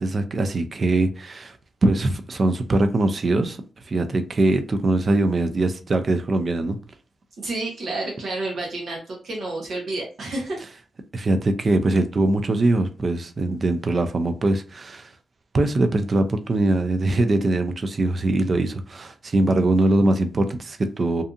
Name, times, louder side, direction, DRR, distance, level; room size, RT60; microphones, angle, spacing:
voice 1, 0.0-1.6 1.8-3.6 3.8-6.8 11.1-15.1 15.5-21.2, right 2 dB, 40° right, 0.3 m, -22 dB
voice 2, 7.4-10.6, right 2 dB, 70° right, 0.9 m, -30 dB
2.6 x 2.5 x 2.4 m
cardioid pair, 105°, 0 cm